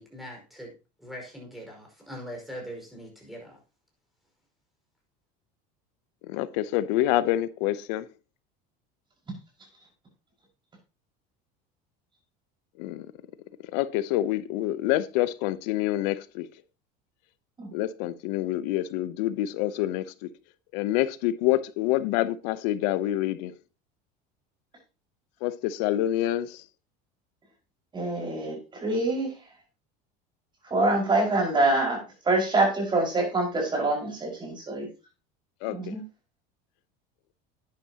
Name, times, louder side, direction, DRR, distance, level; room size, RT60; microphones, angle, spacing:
voice 1, 0.0-3.6, equal, ahead, 5.3 m, -42 dB
voice 2, 6.3-8.1 12.8-13.1 13.7-16.5 17.7-20.3 20.7-23.5 25.4-26.6 35.6-35.7, left 14 dB, 80° left, 0.8 m, -27 dB
voice 3, 27.9-29.6 30.6-34.9 35.7-36.0, right 2 dB, 20° right, 5.4 m, -26 dB
11.5 x 10.0 x 2.9 m
cardioid pair, 140°, 21 cm